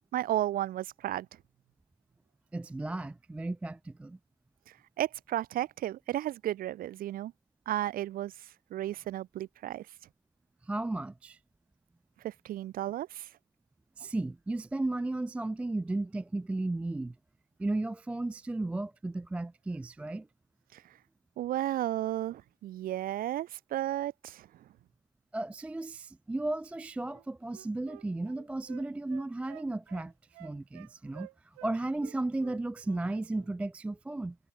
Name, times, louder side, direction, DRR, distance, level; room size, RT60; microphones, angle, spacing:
voice 1, 0.1-1.3 4.7-7.3 7.7-9.9 12.2-13.3 20.7-21.0 21.4-24.6, right 13 dB, 25° right, 1.2 m, -34 dB
voice 2, 2.5-4.2 10.6-11.4 14.0-17.1 17.6-20.3 25.3-30.1 30.4-31.3 31.6-34.4, right 2 dB, 5° right, 0.6 m, -34 dB
Wind instrument woodwind instrument, 27.0-31.7 32.0-33.1 33.3-33.5, right 28 dB, 45° right, 2.6 m, -52 dB
hypercardioid pair, 110°, 32 cm